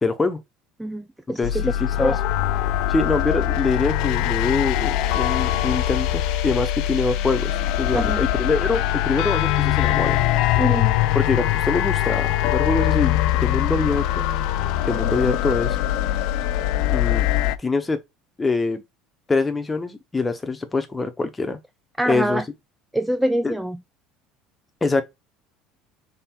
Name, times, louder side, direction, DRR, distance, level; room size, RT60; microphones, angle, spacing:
voice 1, 0.0-0.4 1.4-2.1 2.9-10.2 11.1-14.2 14.8-15.8 16.9-17.3 17.6-18.0 18.4-18.8 19.3-21.6 22.1-22.4 23.4-23.6 24.8-25.0, left 3 dB, 15° left, 0.8 m, -24 dB
voice 2, 0.8-1.6 2.0-2.2 7.9-8.2 10.6-10.9 22.0-22.4 22.9-23.8, right 1 dB, 5° right, 0.3 m, -25 dB
sound 1, 1.4-17.6, left 13 dB, 65° left, 0.5 m, -22 dB
3.6 x 3.3 x 4.4 m
cardioid pair, 135°, 0 cm